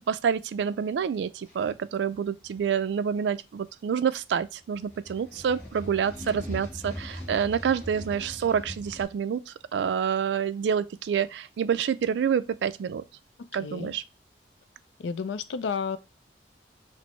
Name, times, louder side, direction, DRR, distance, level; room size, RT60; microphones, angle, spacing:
voice 1, 0.1-13.0 13.5-14.0, right 7 dB, 75° right, 0.3 m, -28 dB
sound 1, 1.5-1.7 2.4-2.6 4.7-9.1, equal, 15° left, 1.7 m, -40 dB
voice 2, 13.4-14.0 15.0-16.0, left 5 dB, 85° left, 0.4 m, -32 dB
6.0 x 2.0 x 3.0 m
head